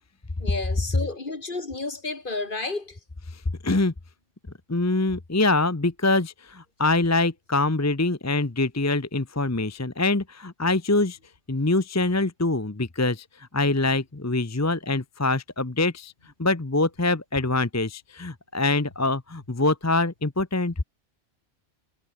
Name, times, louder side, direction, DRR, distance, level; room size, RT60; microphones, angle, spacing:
voice 1, 0.4-3.0, left 3 dB, 45° left, 2.3 m, -31 dB
voice 2, 3.3-3.9 4.7-11.2 11.5-16.1 16.4-20.7, left 2 dB, 15° left, 0.8 m, -24 dB
omnidirectional pair, 1.2 m